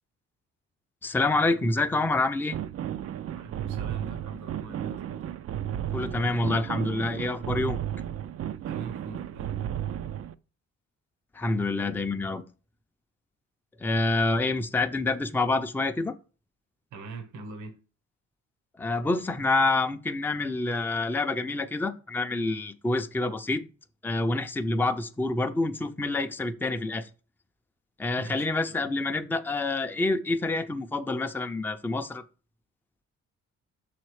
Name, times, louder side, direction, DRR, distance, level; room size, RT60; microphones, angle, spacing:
voice 1, 1.0-2.6 5.9-7.8 11.3-12.4 13.8-16.1 18.8-23.6 24.0-27.1 28.0-32.2, left 2 dB, 5° left, 0.5 m, -27 dB
sound 1, 2.5-10.3, right 10 dB, 50° right, 0.5 m, -34 dB
voice 2, 3.3-5.4 8.6-9.6 16.9-17.8 28.2-28.5, right 3 dB, 80° right, 1.2 m, -43 dB
6.3 x 4.3 x 4.7 m
cardioid pair, 90°, 30 cm